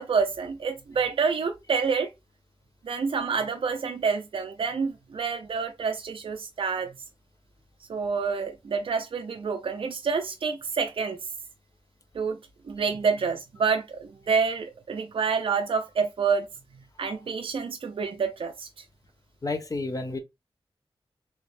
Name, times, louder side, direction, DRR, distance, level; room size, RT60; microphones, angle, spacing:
voice 1, 0.0-2.1 2.8-6.9 7.9-11.2 12.1-12.4 12.7-16.5 17.0-18.7, right 5 dB, 65° right, 0.5 m, -28 dB
voice 2, 19.4-20.2, left 3 dB, 35° left, 0.7 m, -30 dB
3.3 x 3.0 x 2.5 m
wide cardioid pair, 100°, 10 cm